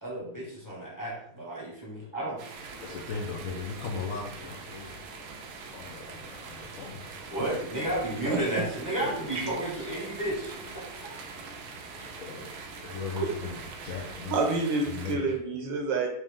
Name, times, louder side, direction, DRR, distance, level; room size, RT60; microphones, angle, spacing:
voice 1, 0.0-2.4 7.3-11.2, right 1 dB, 15° left, -5 dB, 0.9 m, -33 dB
sound 1, 2.4-15.1, right 5 dB, 85° right, 1.5 m, -44 dB
sound 2, 2.5-14.2, equal, 40° left, 0.8 m, -49 dB
voice 2, 2.8-5.0 5.7-7.0 7.4-7.5 9.0-9.6 12.2-12.5 12.8-14.5 14.8-15.3, left 5 dB, 75° left, -2 dB, 0.8 m, -38 dB
voice 3, 14.3-16.1, right 3 dB, 70° right, 3 dB, 1.3 m, -28 dB
4.8 x 2.8 x 3.5 m, 0.68 s
omnidirectional pair, 2.2 m